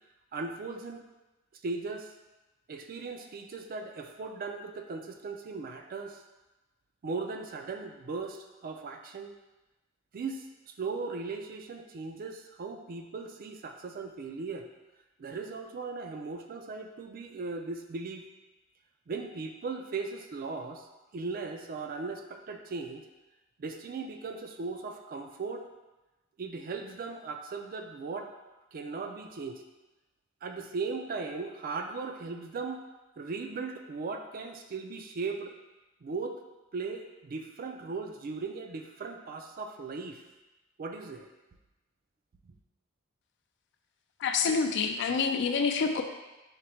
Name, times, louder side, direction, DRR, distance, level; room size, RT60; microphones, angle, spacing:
voice 1, 0.3-1.0 1.6-2.1 2.7-6.2 7.0-9.3 10.1-10.4 10.8-14.7 15.2-18.3 19.1-20.9 21.1-23.0 23.6-25.6 26.4-28.3 28.7-29.6 30.4-32.8 33.2-35.5 36.0-36.4 36.7-40.2 40.8-41.3, right 4 dB, 45° right, 5 dB, 0.4 m, -38 dB
voice 2, 44.2-46.0, left 5 dB, 60° left, 5 dB, 0.4 m, -27 dB
5.0 x 2.1 x 4.4 m, 1.1 s
head